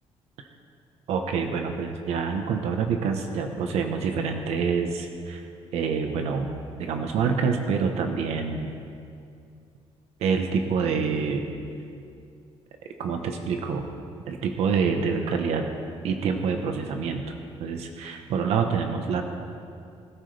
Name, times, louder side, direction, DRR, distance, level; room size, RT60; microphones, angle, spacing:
voice 1, 1.1-5.5 5.7-6.5 6.8-8.7 10.2-11.5 13.0-13.9 14.3-15.7 16.0-17.2 17.6-19.2, right 5 dB, 80° right, 4 dB, 1.2 m, -26 dB
20.0 x 13.5 x 3.4 m, 2.4 s
cardioid pair, 170°, 11 cm